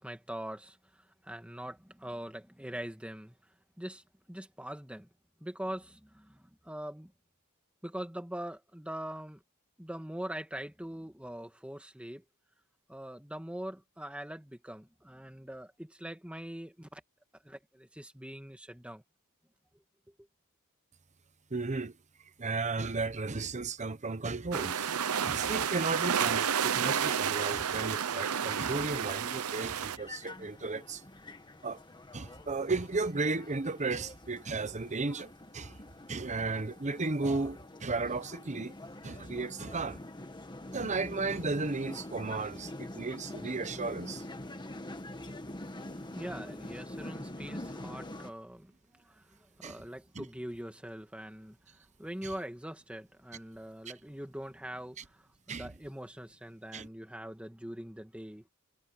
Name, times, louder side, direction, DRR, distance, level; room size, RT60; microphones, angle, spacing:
voice 1, 0.0-3.4 3.8-5.1 5.4-7.1 7.8-9.4 9.8-12.2 12.9-17.0 17.4-19.0 45.2-58.5, right 1 dB, 5° right, 2.1 m, -43 dB
voice 2, 21.5-21.9 22.4-24.9 25.2-31.0 31.6-31.8 32.1-35.8 36.1-38.7 39.0-40.0 40.7-44.2 49.6-49.8 50.1-50.2 52.2-52.3 55.0-55.1 55.5-55.7 56.7-56.9, right 3 dB, 35° right, 0.9 m, -34 dB
sound 1, 24.5-30.0, right 8 dB, 80° right, 0.8 m, -31 dB
sound 2, 30.0-48.3, left 1 dB, 20° left, 1.7 m, -45 dB
head